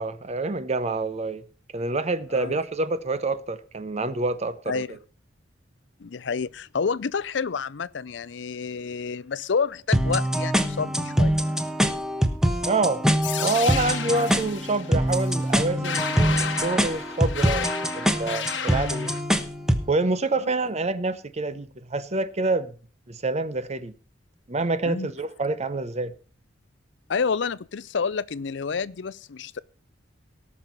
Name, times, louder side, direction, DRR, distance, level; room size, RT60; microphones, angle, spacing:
voice 1, 0.0-1.4 1.7-5.0 12.7-13.0 13.4-19.1 19.9-22.7 23.1-23.9 24.5-26.1, right 3 dB, 35° right, 0.8 m, -27 dB
voice 2, 4.7-5.0 6.0-11.3 24.8-25.1 27.1-29.6, left 5 dB, 70° left, 0.5 m, -29 dB
sound 1, 9.9-19.9, equal, 5° right, 1.1 m, -24 dB
sound 2, 13.2-19.2, left 7 dB, 85° left, 1.4 m, -32 dB
18.0 x 6.3 x 5.3 m
head